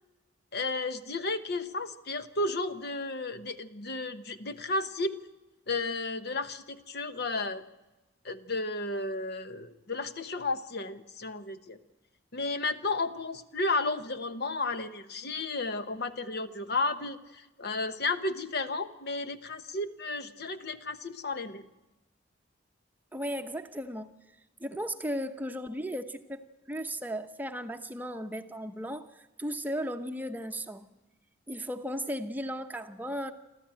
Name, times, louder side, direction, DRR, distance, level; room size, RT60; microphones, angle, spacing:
voice 1, 0.5-5.2 5.7-7.6 8.2-11.8 12.3-21.7, left 3 dB, 55° left, 10 dB, 1.1 m, -33 dB
voice 2, 23.1-24.1 24.6-26.4 26.7-29.1 29.4-30.9 31.5-33.3, equal, 10° right, 7 dB, 0.8 m, -35 dB
27.5 x 13.5 x 9.0 m, 1.1 s
head